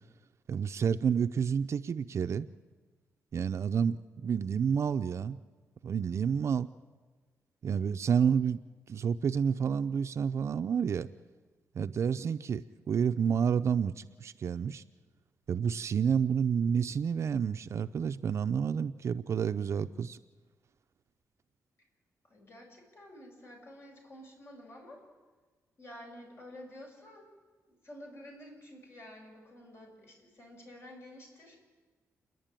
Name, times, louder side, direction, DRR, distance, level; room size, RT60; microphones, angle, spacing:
voice 1, 0.5-2.5 3.3-5.4 5.8-6.7 7.6-11.1 11.8-14.8 15.5-20.2, right 7 dB, 55° right, 9 dB, 0.5 m, -29 dB
voice 2, 22.2-25.0 25.8-27.3 27.7-31.6, left 1 dB, 50° left, 0 dB, 6.6 m, -50 dB
29.5 x 11.0 x 9.0 m, 1.3 s
cardioid pair, 100°, 6 cm